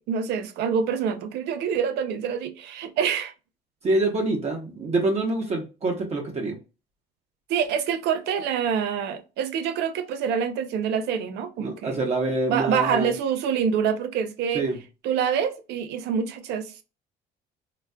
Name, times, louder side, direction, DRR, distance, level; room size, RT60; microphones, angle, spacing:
voice 1, 0.0-3.3 7.5-11.9 12.5-14.6 15.0-16.8, right 7 dB, 80° right, 0.5 m, -26 dB
voice 2, 3.8-6.6 11.6-13.1 14.5-14.8, right 2 dB, 40° right, 0.9 m, -26 dB
4.0 x 2.2 x 2.2 m
cardioid pair, 110°, 17 cm